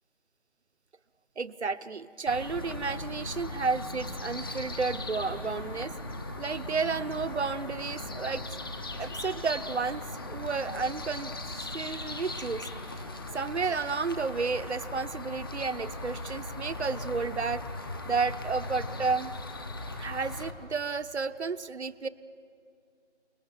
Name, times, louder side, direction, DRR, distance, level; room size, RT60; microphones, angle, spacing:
voice 1, 1.4-5.9 6.4-8.5 9.0-12.7 13.3-17.7 18.0-19.3 20.0-22.1, right 4 dB, 65° right, 12 dB, 1.0 m, -32 dB
sound 1, 2.3-20.5, left 2 dB, 20° left, 1.1 m, -38 dB
28.5 x 20.5 x 7.5 m, 2.3 s
figure-of-eight pair, 160°, 36 cm